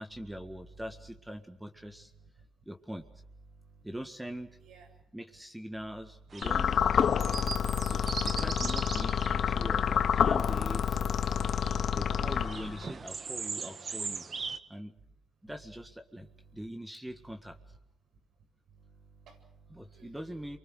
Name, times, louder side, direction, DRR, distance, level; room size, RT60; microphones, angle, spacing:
voice 1, 0.0-2.1 2.6-3.0 3.8-4.5 5.1-6.8 7.9-11.0 11.9-14.9 15.4-16.3 16.5-17.6 19.7-20.6, equal, 5° right, 5 dB, 1.8 m, -42 dB
voice 2, 3.5-3.8 4.6-4.9 12.3-12.5 16.2-16.6 18.7-20.4, right 5 dB, 75° right, 3 dB, 8.0 m, -57 dB
sound 1, 6.3-14.6, right 5 dB, 40° right, 1.5 m, -41 dB
sound 2, 6.4-12.9, left 8 dB, 60° left, 0.9 m, -28 dB
29.0 x 24.0 x 6.5 m, 0.79 s
cardioid pair, 90°, 0 cm